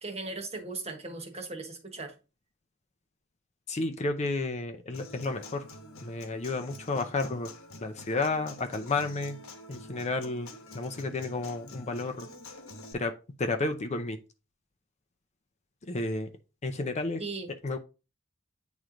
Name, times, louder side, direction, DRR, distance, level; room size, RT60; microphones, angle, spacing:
voice 1, 0.0-2.1 17.2-17.5, right 3 dB, 30° right, 1.2 m, -38 dB
voice 2, 3.7-7.5 7.8-9.4 9.7-12.3 12.9-13.1 13.4-14.2 15.8-16.3 16.6-17.2 17.6-17.8, left 3 dB, 35° left, 0.5 m, -32 dB
Human voice / Acoustic guitar, 4.9-12.9, left 2 dB, 80° left, 1.1 m, -47 dB
8.9 x 3.2 x 3.8 m
head